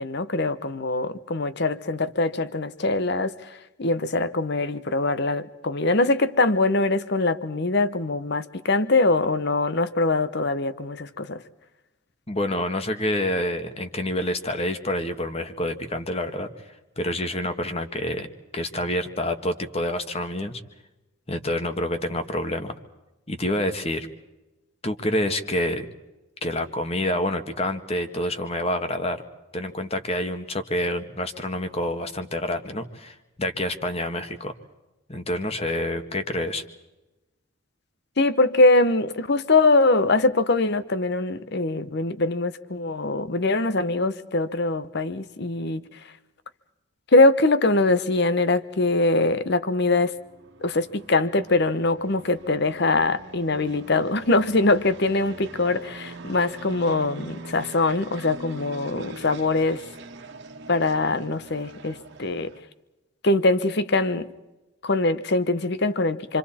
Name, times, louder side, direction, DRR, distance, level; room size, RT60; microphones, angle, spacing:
voice 1, 0.0-11.4 38.2-46.1 47.1-50.1 50.6-59.8 60.7-62.5 63.2-64.3 64.8-66.4, left 2 dB, 55° left, 1.0 m, -23 dB
voice 2, 12.3-16.5 17.0-18.3 18.5-20.6 21.3-22.7 23.3-24.1 24.8-25.9 26.4-29.2 29.5-34.5 35.1-36.6, left 1 dB, 30° left, 1.5 m, -27 dB
sound 1, 49.4-62.6, right 2 dB, 55° right, 1.8 m, -43 dB
28.0 x 25.5 x 4.3 m
head